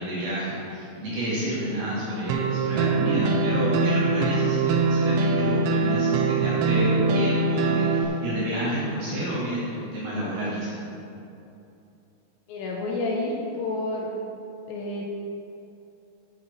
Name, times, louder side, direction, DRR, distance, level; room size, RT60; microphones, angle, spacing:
voice 1, 0.0-10.8, right 1 dB, 60° right, -8 dB, 2.5 m, -29 dB
sound 1, 2.3-8.1, right 3 dB, 80° right, 2.7 m, -23 dB
voice 2, 12.5-14.1 14.7-15.0, left 2 dB, 75° left, -2 dB, 2.8 m, -29 dB
14.5 x 6.0 x 4.0 m, 2.8 s
omnidirectional pair, 5.7 m